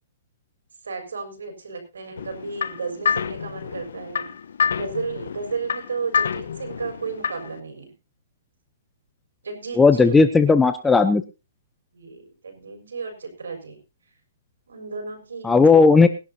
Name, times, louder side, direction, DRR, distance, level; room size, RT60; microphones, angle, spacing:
voice 1, 0.8-4.3 4.7-7.9 9.4-10.1 11.9-13.8 14.7-15.9, right 4 dB, 80° right, 4 dB, 6.5 m, -33 dB
sound 1, 2.2-7.6, left 6 dB, 70° left, 1.2 m, -28 dB
voice 2, 9.8-11.2 15.4-16.1, left 4 dB, 10° left, 10 dB, 0.8 m, -15 dB
21.0 x 11.5 x 2.9 m, 0.29 s
hypercardioid pair, 145°, 0 cm